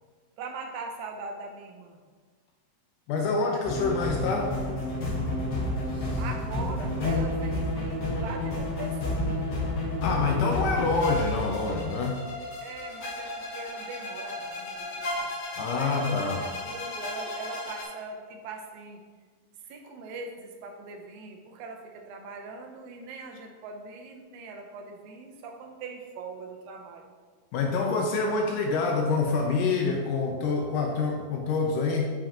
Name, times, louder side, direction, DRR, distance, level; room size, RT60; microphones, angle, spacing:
voice 1, 0.4-2.0 6.2-9.3 12.6-15.4 15.7-19.0 19.7-27.1, right 3 dB, 75° right, 3 dB, 1.8 m, -41 dB
voice 2, 3.1-4.5 10.0-12.2 15.6-16.4 27.5-32.1, left 4 dB, 80° left, 2 dB, 2.1 m, -26 dB
sound 1, 3.6-17.8, left 2 dB, 65° left, 1.1 m, -31 dB
7.1 x 5.3 x 2.8 m, 1.5 s
omnidirectional pair, 3.9 m